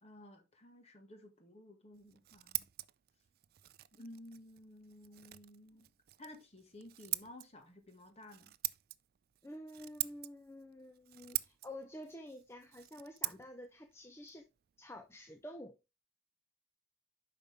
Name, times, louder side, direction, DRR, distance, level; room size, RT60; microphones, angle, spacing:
voice 1, 0.0-2.7 3.9-5.9 6.2-8.5, left 1 dB, 35° left, 1.8 m, -54 dB
Scissors, 1.9-15.5, right 18 dB, 50° right, 0.4 m, -45 dB
voice 2, 9.4-14.4 14.8-15.8, left 1 dB, 15° left, 0.6 m, -49 dB
8.8 x 5.8 x 3.4 m
head